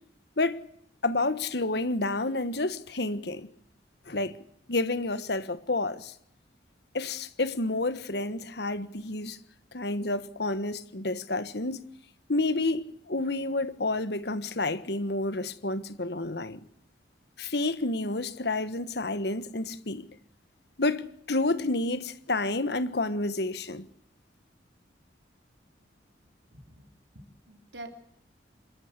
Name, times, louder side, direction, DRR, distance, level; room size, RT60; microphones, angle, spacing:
voice 1, 1.0-3.5 4.1-4.4 4.7-6.1 6.9-9.4 9.7-11.9 12.3-16.6 17.4-20.1 20.8-23.8, left 2 dB, 60° left, 1.4 m, -29 dB
voice 2, 26.5-26.9 27.1-27.9, right 2 dB, 70° right, 3.8 m, -46 dB
27.5 x 14.0 x 8.3 m
head